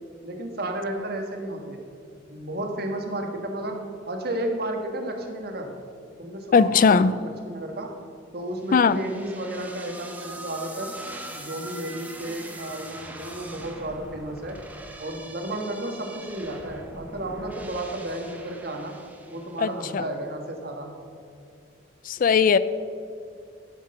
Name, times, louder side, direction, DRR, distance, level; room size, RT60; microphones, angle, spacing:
voice 1, 0.2-1.8 2.3-3.8 4.1-5.7 6.2-7.9 8.3-10.9 11.3-14.6 15.0-19.0 19.3-20.9, right 1 dB, 55° right, 3 dB, 1.6 m, -32 dB
voice 2, 6.5-7.1 8.7-9.0 19.6-20.0 22.0-22.6, left 5 dB, 45° left, 15 dB, 0.3 m, -19 dB
sound 1, 8.6-19.9, right 1 dB, 10° right, 1.0 m, -42 dB
13.0 x 6.7 x 6.6 m, 2.5 s
head